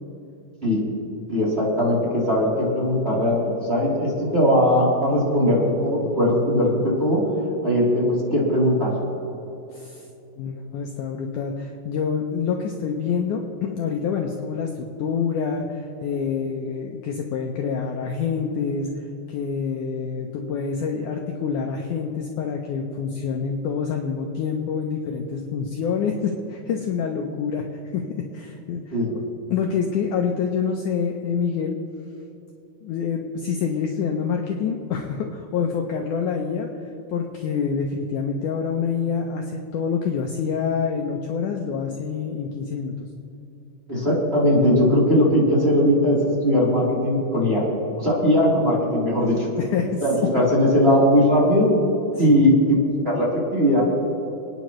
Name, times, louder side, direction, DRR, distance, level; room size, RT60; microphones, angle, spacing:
voice 1, 1.3-7.2 7.6-8.9 28.9-29.1 43.9-47.6 48.0-49.5 50.0-51.7 52.2-52.7 53.0-53.8, equal, 15° right, -7 dB, 3.3 m, -19 dB
voice 2, 9.7-10.1 10.4-18.9 19.3-27.7 27.9-29.0 29.5-31.8 32.8-36.7 37.1-42.9 49.6-50.0 52.2-52.4, left 6 dB, 75° left, 2 dB, 2.0 m, -26 dB
28.5 x 9.6 x 3.1 m, 2.9 s
omnidirectional pair, 4.3 m